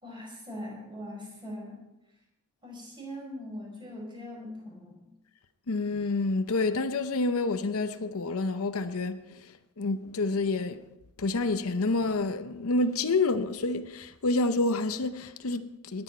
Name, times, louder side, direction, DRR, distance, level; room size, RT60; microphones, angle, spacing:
voice 1, 0.0-1.8 2.6-5.1, left 1 dB, 20° right, 4.9 m, -41 dB
voice 2, 5.7-10.9 11.2-16.0, left 3 dB, 75° left, 0.7 m, -28 dB
19.5 x 8.9 x 4.5 m
head